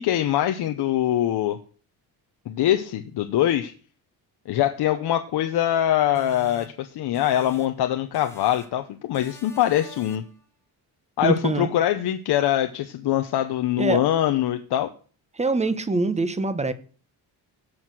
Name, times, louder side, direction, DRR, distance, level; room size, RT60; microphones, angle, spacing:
voice 1, 0.0-1.6 2.5-3.7 4.5-10.3 11.2-14.9, left 12 dB, 85° left, 1.0 m, -23 dB
sound 1, 6.1-7.9 8.1-8.8 9.1-10.4, equal, 5° left, 1.5 m, -46 dB
voice 2, 11.2-11.7 13.8-14.0 15.3-16.7, right 3 dB, 15° right, 1.0 m, -24 dB
16.5 x 6.5 x 6.3 m
cardioid pair, 145°, 39 cm